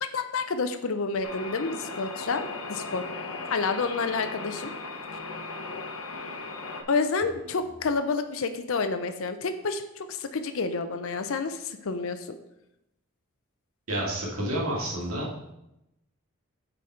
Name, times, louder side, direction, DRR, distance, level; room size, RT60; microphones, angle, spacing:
voice 1, 0.1-3.0 3.5-4.7 6.9-12.3, left 4 dB, 65° left, 8 dB, 0.5 m, -29 dB
sound 1, 1.2-6.8, left 3 dB, 85° left, 0.9 m, -37 dB
voice 2, 13.9-15.5, right 1 dB, 70° right, -3 dB, 2.0 m, -30 dB
8.4 x 4.0 x 4.4 m, 0.86 s
head